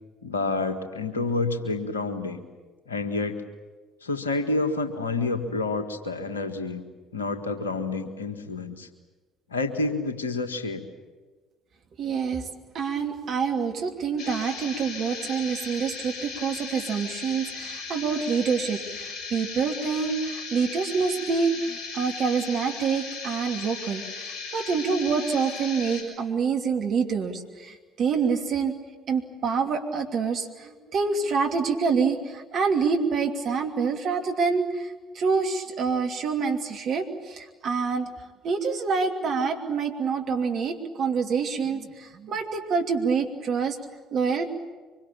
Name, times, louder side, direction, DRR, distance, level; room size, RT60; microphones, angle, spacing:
voice 1, 0.2-2.4 2.9-3.4 4.0-6.8 7.1-8.9 9.5-10.9, left 3 dB, 85° left, 9 dB, 1.7 m, -28 dB
voice 2, 12.0-12.5 12.7-28.7 29.1-38.1 38.4-43.8 44.1-44.5, right 5 dB, 50° right, 3 dB, 2.9 m, -26 dB
sound 1, 14.2-26.0, left 4 dB, 50° left, 6.7 m, -37 dB
25.0 x 23.0 x 8.8 m, 1.3 s
figure-of-eight pair, 55°, 0 cm